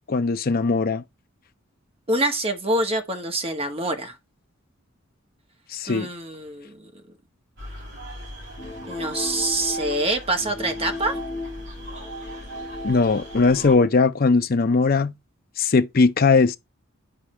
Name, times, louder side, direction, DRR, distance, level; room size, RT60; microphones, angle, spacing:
voice 1, 0.1-1.0 5.7-6.1 12.8-15.1 15.6-16.6, left 4 dB, 45° left, 0.6 m, -19 dB
voice 2, 2.1-4.1 5.9-6.9 8.9-11.2, right 1 dB, 30° right, 1.3 m, -25 dB
sound 1, 7.6-13.8, equal, 60° right, 4.3 m, -40 dB
sound 2, 8.6-13.9, left 1 dB, 30° left, 1.0 m, -35 dB
10.0 x 4.6 x 3.2 m
head